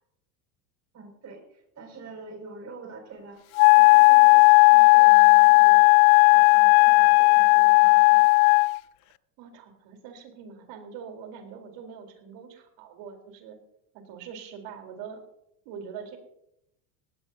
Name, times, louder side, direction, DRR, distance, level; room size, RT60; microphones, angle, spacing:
voice 1, 0.9-5.9 6.2-8.3, right 4 dB, 35° right, 3 dB, 6.1 m, -45 dB
Wind instrument woodwind instrument, 3.6-8.8, left 26 dB, 65° left, 0.5 m, -15 dB
voice 2, 9.4-13.6 13.9-15.2 15.7-16.2, right 7 dB, 60° right, 4 dB, 4.0 m, -43 dB
19.5 x 17.0 x 2.8 m, 0.80 s
supercardioid pair, 110°, 48 cm